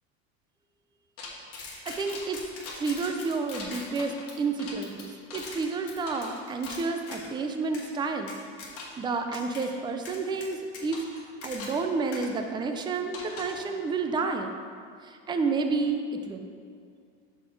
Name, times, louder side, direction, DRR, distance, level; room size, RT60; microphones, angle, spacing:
sound 1, 1.2-7.3 7.7-7.9 8.3-9.1 9.3-9.7 10.1-11.9 12.1-12.3 13.1-13.6, left 3 dB, 45° left, 1.3 m, -41 dB
voice 1, 1.8-2.4 2.7-8.3 9.0-11.0 11.4-14.5 15.0-16.5, right 4 dB, 15° right, 5 dB, 0.4 m, -30 dB
5.9 x 4.1 x 4.6 m, 2.2 s
supercardioid pair, 115°, 33 cm